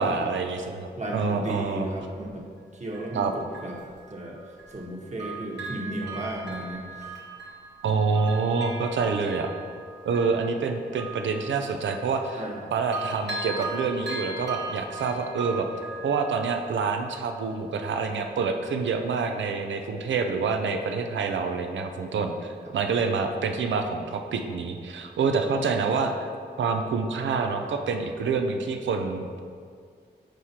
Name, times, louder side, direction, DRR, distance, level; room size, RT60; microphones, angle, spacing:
voice 1, 0.0-1.9 3.1-3.3 7.8-9.5 10.0-12.4 12.7-15.7 16.0-26.3 26.6-29.4, right 4 dB, 85° right, 5 dB, 0.5 m, -27 dB
voice 2, 1.0-2.5 2.7-3.8 4.1-4.4 4.7-7.1 12.3-12.7 22.6-22.7, right 1 dB, 40° right, -2 dB, 1.3 m, -34 dB
Bell, 2.9-4.9 5.2-12.6 12.9-17.5 18.0-18.1, right 3 dB, 65° right, 1.4 m, -39 dB
7.6 x 4.8 x 2.8 m, 2.1 s
cardioid pair, 45°, 19 cm